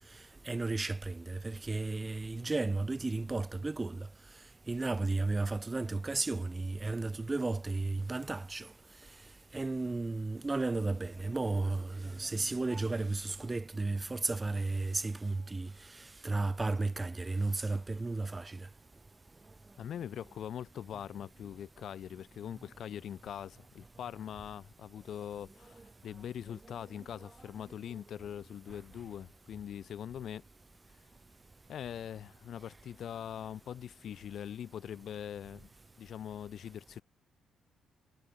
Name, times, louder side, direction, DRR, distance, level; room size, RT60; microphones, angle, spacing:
voice 1, 0.5-4.1 4.7-8.7 9.5-15.7 16.2-18.7, right 3 dB, 15° right, 0.3 m, -33 dB
voice 2, 19.8-30.4 31.7-35.7 36.0-37.0, left 9 dB, 50° left, 0.6 m, -42 dB
cardioid pair, 175°, 0 cm